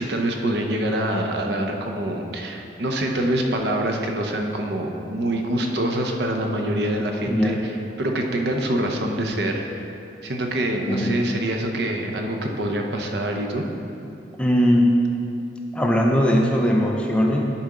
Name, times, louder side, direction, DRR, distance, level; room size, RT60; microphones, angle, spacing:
voice 1, 0.0-9.8 10.2-13.6, right 1 dB, 65° right, 2 dB, 0.7 m, -25 dB
voice 2, 7.3-7.6 10.9-11.2 14.4-15.0 15.7-17.4, equal, 5° left, 0 dB, 0.4 m, -19 dB
10.5 x 4.3 x 3.7 m, 2.7 s
head